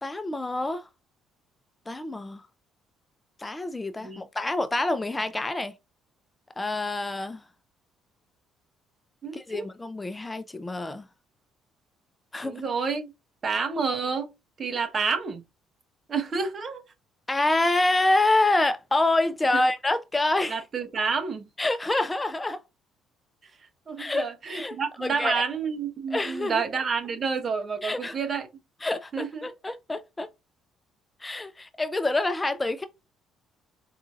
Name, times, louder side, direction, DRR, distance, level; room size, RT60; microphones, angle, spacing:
voice 1, 0.0-0.9 1.9-2.4 3.4-5.7 6.6-7.4 9.3-11.0 12.3-12.7 17.3-20.6 21.6-22.6 24.0-24.8 25.0-25.4 26.1-26.6 27.8-28.2 28.8-30.3 31.2-32.9, left 2 dB, 15° left, 0.5 m, -27 dB
voice 2, 9.2-9.7 12.4-13.1 13.4-14.3 14.6-15.4 16.1-16.8 19.5-19.6 20.5-21.5 23.9-28.5 29.1-29.5, right 5 dB, 40° right, 1.0 m, -29 dB
4.9 x 2.7 x 2.4 m
supercardioid pair, 80°, 0 cm